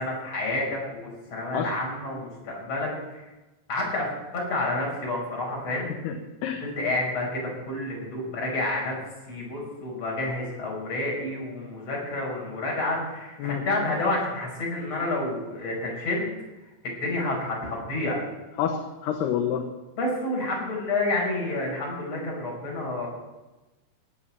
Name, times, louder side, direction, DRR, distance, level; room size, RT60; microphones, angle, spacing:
voice 1, 0.0-3.3 3.7-5.9 6.6-9.0 9.3-16.3 17.0-18.2 20.0-23.1, left 2 dB, 35° left, -2 dB, 6.3 m, -29 dB
voice 2, 5.7-6.6 13.4-13.7 18.6-19.8, left 8 dB, 75° left, 4 dB, 2.9 m, -29 dB
18.0 x 8.8 x 7.5 m, 1.1 s
omnidirectional pair, 5.1 m